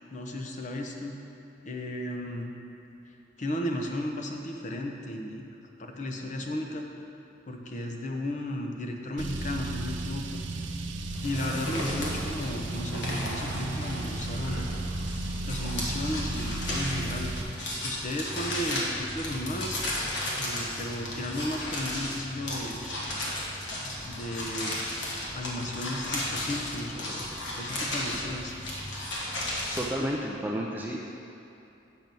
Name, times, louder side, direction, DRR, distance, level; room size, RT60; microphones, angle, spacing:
voice 1, 0.1-1.2 1.6-2.5 3.1-5.4 5.8-6.9 7.5-10.7 11.2-14.7 15.5-17.4 17.8-19.8 20.4-22.8 24.0-24.8 25.3-27.3 27.5-28.5, left 1 dB, 40° left, 2 dB, 0.7 m, -34 dB
Car, 9.2-17.4, right 2 dB, 85° right, 0.6 m, -34 dB
sound 1, 11.1-29.8, left 1 dB, 75° left, 1.5 m, -34 dB
voice 2, 29.8-31.0, equal, 10° right, -2 dB, 0.4 m, -31 dB
7.6 x 5.9 x 5.3 m, 2.8 s
head